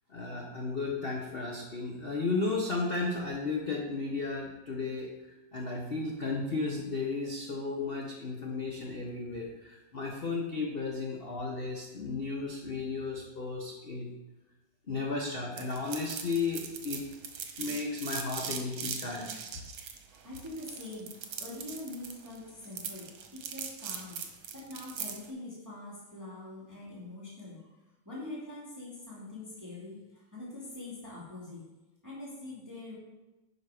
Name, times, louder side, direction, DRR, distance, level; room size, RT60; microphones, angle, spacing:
voice 1, 0.1-5.1 5.5-14.1 14.9-17.0 17.6-19.3, left 3 dB, 45° left, 0 dB, 0.7 m, -34 dB
sound 1, 15.6-25.3, right 7 dB, 70° right, 1.7 m, -40 dB
voice 2, 20.2-21.1 21.4-24.2 24.5-27.6 28.1-30.0 30.3-31.6 32.0-33.0, left 2 dB, 10° right, -7 dB, 2.3 m, -43 dB
10.5 x 5.0 x 5.0 m, 1.1 s
omnidirectional pair, 2.3 m